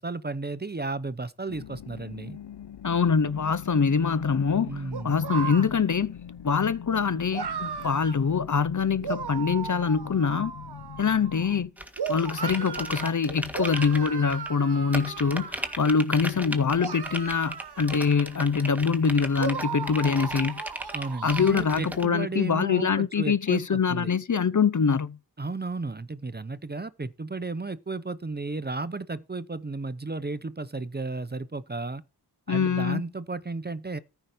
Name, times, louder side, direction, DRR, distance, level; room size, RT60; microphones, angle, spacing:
voice 1, 0.0-2.4 4.7-5.2 20.9-24.1 25.4-32.0 32.5-34.0, right 3 dB, 25° right, 0.7 m, -34 dB
sound 1, 1.5-11.7, left 9 dB, 80° left, 0.8 m, -43 dB
voice 2, 2.8-6.2 6.4-10.5 11.0-11.7 12.1-20.6 21.2-25.2 32.5-33.0, left 5 dB, 45° left, 0.7 m, -24 dB
sound 2, 4.9-5.7 7.3-8.2 9.0-11.5 12.0-13.1 13.5-15.9 16.8-18.7 19.4-21.5, right 6 dB, 70° right, 1.2 m, -36 dB
sound 3, 11.8-14.5 14.9-22.0, equal, 5° right, 1.7 m, -36 dB
14.0 x 5.9 x 5.1 m
wide cardioid pair, 95°, 41 cm